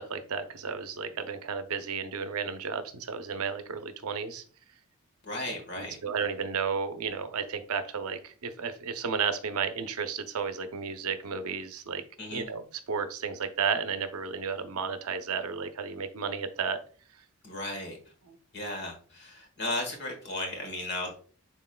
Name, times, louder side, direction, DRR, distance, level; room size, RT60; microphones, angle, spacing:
voice 1, 0.0-4.4 5.4-12.0 12.3-16.8 18.3-18.4, right 6 dB, 80° right, 9 dB, 0.6 m, -33 dB
voice 2, 5.2-6.0 12.2-12.5 17.4-18.0 18.5-21.1, left 2 dB, 50° left, 2 dB, 1.5 m, -35 dB
5.9 x 4.0 x 2.2 m, 0.42 s
head